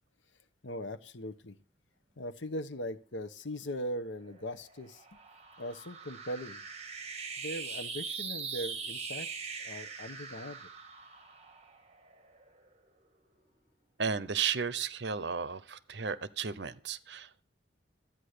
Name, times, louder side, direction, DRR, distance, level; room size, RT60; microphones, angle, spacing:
voice 1, 0.6-1.6 2.2-5.0 5.6-6.6 7.4-9.3 9.6-10.6, equal, 80° left, 1.1 m, -39 dB
sound 1, 4.1-12.7, right 5 dB, 35° right, 1.7 m, -42 dB
voice 2, 14.0-17.4, right 6 dB, 65° right, 0.8 m, -34 dB
13.0 x 9.3 x 6.7 m
head